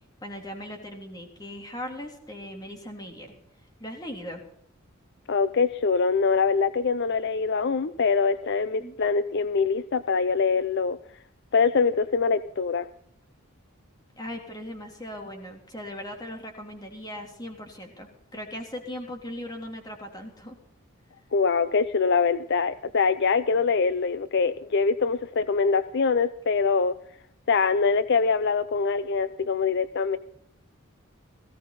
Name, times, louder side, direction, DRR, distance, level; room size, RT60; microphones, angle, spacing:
voice 1, 0.2-3.3 3.8-4.4 8.8-9.0 14.2-20.6, left 1 dB, 20° left, 2 dB, 3.4 m, -39 dB
voice 2, 5.3-11.0 11.5-12.9 21.3-27.0 27.5-30.2, left 5 dB, 55° left, 13 dB, 0.6 m, -24 dB
18.5 x 16.0 x 4.2 m, 0.67 s
head